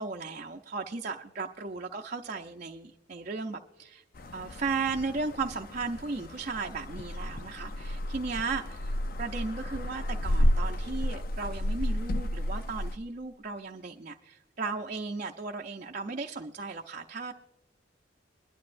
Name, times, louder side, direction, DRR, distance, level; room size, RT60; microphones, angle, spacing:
voice 1, 0.0-4.0 4.3-17.3, right 4 dB, 40° right, 2 dB, 0.5 m, -36 dB
sound 1, 4.1-13.0, equal, 50° left, 0.5 m, -32 dB
22.5 x 11.5 x 2.5 m, 1.0 s
head